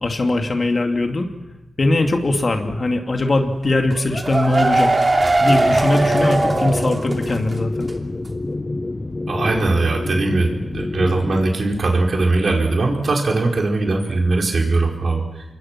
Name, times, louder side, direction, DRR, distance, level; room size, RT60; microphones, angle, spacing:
voice 1, 0.0-1.3 1.8-4.9 5.4-7.9, left 2 dB, 45° left, 4 dB, 2.7 m, -20 dB
sound 1, 3.9-7.5 7.8-7.9 8.2-8.3, right 2 dB, 30° right, 3.0 m, -19 dB
sound 2, 5.5-11.5, left 2 dB, 25° left, 1.3 m, -27 dB
voice 2, 9.3-15.4, right 2 dB, 60° right, 1 dB, 4.9 m, -20 dB
27.0 x 22.5 x 6.1 m, 0.99 s
cardioid pair, 75°, 0 cm